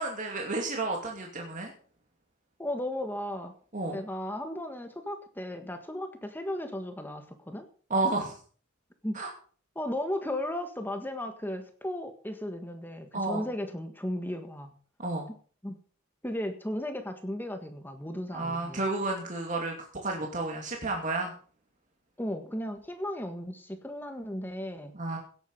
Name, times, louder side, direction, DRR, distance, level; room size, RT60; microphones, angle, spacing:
voice 1, 0.0-1.7 3.7-4.0 7.9-8.4 9.1-9.3 13.1-13.4 15.0-15.3 18.3-19.7 20.0-21.3 24.9-25.2, right 2 dB, 40° right, 1 dB, 2.6 m, -31 dB
voice 2, 2.6-3.5 3.9-7.7 9.0-9.2 9.7-14.7 15.6-15.8 16.2-18.8 22.2-24.9, left 1 dB, 10° left, 6 dB, 1.6 m, -35 dB
18.0 x 9.1 x 5.4 m, 0.43 s
head